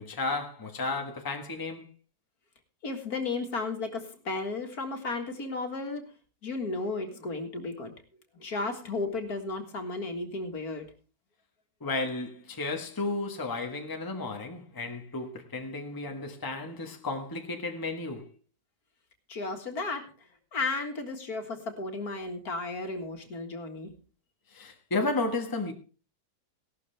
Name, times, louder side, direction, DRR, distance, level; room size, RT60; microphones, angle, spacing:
voice 1, 0.0-1.9 11.8-18.3 24.5-25.7, left 3 dB, 15° left, 1.3 m, -33 dB
voice 2, 2.8-6.0 6.4-7.9 8.4-10.9 19.3-20.1 20.5-23.9, left 3 dB, 60° left, 2.3 m, -34 dB
16.5 x 12.0 x 3.4 m
omnidirectional pair, 1.8 m